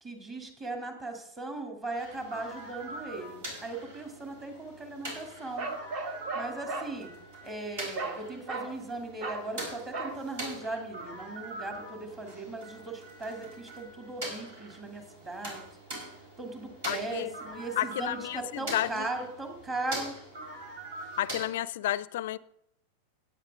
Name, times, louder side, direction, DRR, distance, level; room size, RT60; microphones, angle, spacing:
voice 1, 0.0-5.7 6.3-7.1 7.4-15.6 16.4-20.1, right 2 dB, 25° right, 2.7 m, -38 dB
sound 1, 2.0-21.5, right 1 dB, 55° right, 4.5 m, -43 dB
Bark, 5.6-6.9 8.0-8.2 8.5-8.8 9.2-9.5 9.9-10.2, right 3 dB, 40° right, 1.3 m, -36 dB
voice 2, 16.8-17.3 17.8-19.1 21.2-22.4, left 13 dB, 55° left, 0.4 m, -31 dB
16.0 x 9.5 x 3.6 m
figure-of-eight pair, 90°, 0 cm